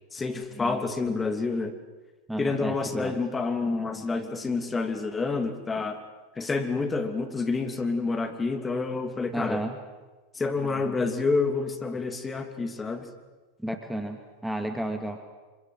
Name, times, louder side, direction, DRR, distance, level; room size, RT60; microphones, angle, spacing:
voice 1, 0.1-1.8 2.4-6.0 6.4-9.6 10.3-13.1, left 3 dB, 20° left, 7 dB, 3.0 m, -28 dB
voice 2, 2.3-3.2 9.3-9.8 13.6-15.2, right 1 dB, 5° right, 6 dB, 2.2 m, -32 dB
26.0 x 25.0 x 7.9 m, 1.2 s
hypercardioid pair, 95°, 0 cm